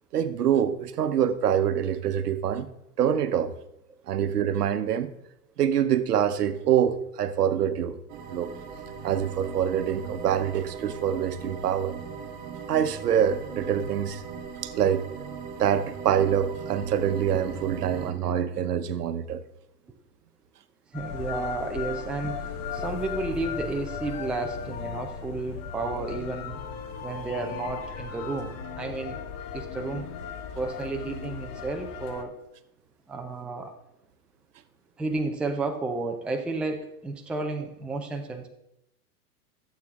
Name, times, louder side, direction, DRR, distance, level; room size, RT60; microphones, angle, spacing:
voice 1, 0.1-2.7 3.0-3.5 4.1-5.1 5.6-8.0 8.3-8.5 9.0-11.9 12.7-14.2 14.6-15.1 15.6-19.4, right 9 dB, 85° right, 1.0 m, -25 dB
sound 1, 8.1-18.1, right 6 dB, 35° right, 1.4 m, -39 dB
sound 2, 20.9-32.2, left 7 dB, 35° left, 1.0 m, -36 dB
voice 2, 20.9-22.4 22.7-26.6 27.0-29.2 29.5-30.1 30.6-32.3 33.1-33.7 35.0-38.5, right 3 dB, ahead, 0.4 m, -32 dB
12.0 x 7.6 x 3.6 m
hypercardioid pair, 125°, 46 cm